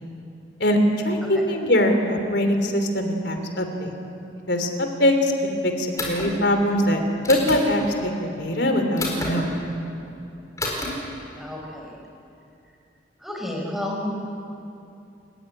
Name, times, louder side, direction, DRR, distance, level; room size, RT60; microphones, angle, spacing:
voice 1, 0.6-3.9 4.5-7.0 7.3-9.7, left 1 dB, 70° left, 5 dB, 3.3 m, -22 dB
sound 1, 6.0-6.3 7.2-7.6 9.0-9.3 10.6-10.9, left 2 dB, 20° left, 5.0 m, -28 dB
voice 2, 11.4-12.0 13.2-14.1, left 1 dB, ahead, -1 dB, 4.4 m, -31 dB
29.5 x 15.5 x 9.9 m, 2.7 s
head